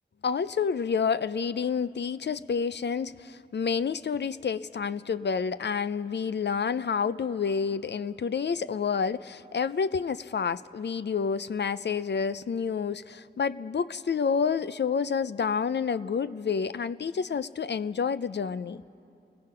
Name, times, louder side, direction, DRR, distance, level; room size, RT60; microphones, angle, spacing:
voice 1, 0.2-18.8, left 6 dB, 65° left, 0.5 m, -29 dB
29.5 x 18.0 x 5.6 m
cardioid pair, 45°, 19 cm